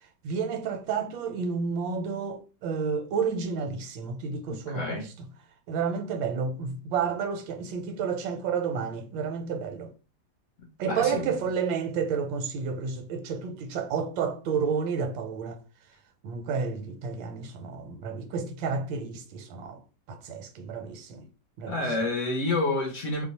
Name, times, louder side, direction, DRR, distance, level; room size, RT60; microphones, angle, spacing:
voice 1, 0.2-5.0 5.7-9.9 10.8-15.6 16.2-19.8 20.1-21.3 21.6-21.8, right 6 dB, 85° right, 1.4 m, -30 dB
voice 2, 4.5-5.1 10.9-11.4 21.7-23.2, left 2 dB, 60° left, 0.8 m, -29 dB
3.1 x 2.1 x 4.0 m
omnidirectional pair, 2.1 m